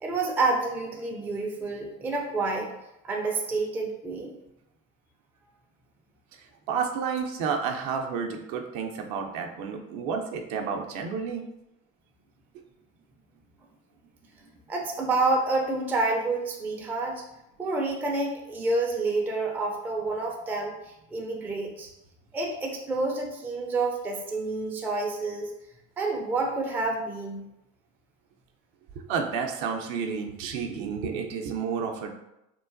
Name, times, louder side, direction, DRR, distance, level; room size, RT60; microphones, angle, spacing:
voice 1, 0.0-2.7 3.0-4.3 14.7-17.2 17.6-20.7 21.1-21.9 22.3-25.5 26.0-27.4, right 3 dB, 5° right, 0 dB, 0.3 m, -28 dB
voice 2, 6.7-11.5 29.0-32.1, right 6 dB, 60° right, 3 dB, 0.5 m, -31 dB
3.0 x 2.1 x 2.4 m, 0.87 s
hypercardioid pair, 70°, 40 cm